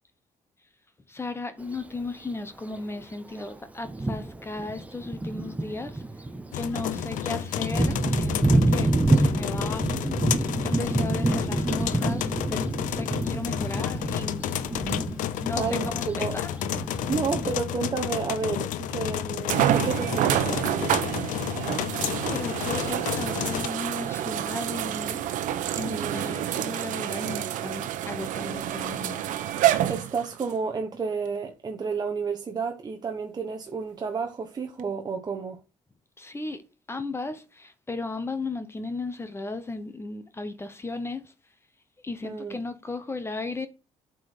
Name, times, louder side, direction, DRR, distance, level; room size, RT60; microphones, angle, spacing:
voice 1, 1.1-6.1 6.5-10.1 10.4-14.6 15.4-15.7 15.9-16.5 22.3-25.2 25.8-29.2 36.2-36.6 36.9-41.3 42.0-43.7, left 3 dB, 20° left, 1.0 m, -35 dB
Thunder, 1.6-1.7 2.7-2.8 3.4-3.5 3.8-17.6, right 2 dB, 10° right, 0.8 m, -28 dB
sound 1, 6.5-23.7, left 12 dB, 90° left, 0.6 m, -31 dB
voice 2, 15.6-16.3 17.1-20.9 25.9-26.2 29.9-35.6 42.2-42.6, right 5 dB, 30° right, 1.1 m, -31 dB
sound 2, 18.4-18.5 19.5-30.5 31.3-31.4 34.8-34.9, right 11 dB, 85° right, 0.9 m, -28 dB
8.0 x 4.7 x 4.9 m
cardioid pair, 120°, 13 cm